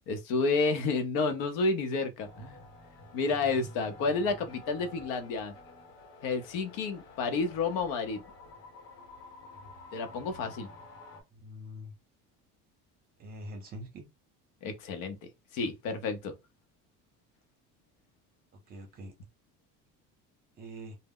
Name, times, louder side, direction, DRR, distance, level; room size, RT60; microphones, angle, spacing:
voice 1, 0.1-2.6 3.1-5.5 6.2-8.2 9.9-10.7 14.6-15.2 15.5-16.3, left 4 dB, 90° left, 0.7 m, -30 dB
sound 1, 2.2-11.2, left 2 dB, 60° left, 1.1 m, -50 dB
voice 2, 11.4-11.9 13.2-14.1 18.7-19.1 20.6-21.0, equal, 30° right, 0.6 m, -43 dB
2.1 x 2.0 x 3.6 m
cardioid pair, 165°, 30 cm